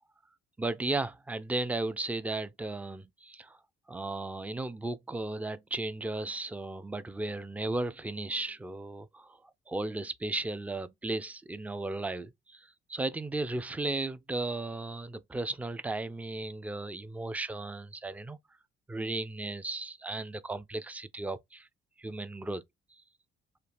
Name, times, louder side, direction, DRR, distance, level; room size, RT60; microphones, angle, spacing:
voice 1, 0.6-3.6 3.9-9.4 9.7-18.4 18.9-21.7 22.0-22.6, right 2 dB, 5° right, 0.3 m, -35 dB
3.2 x 2.4 x 2.5 m
hypercardioid pair, 45°, 29 cm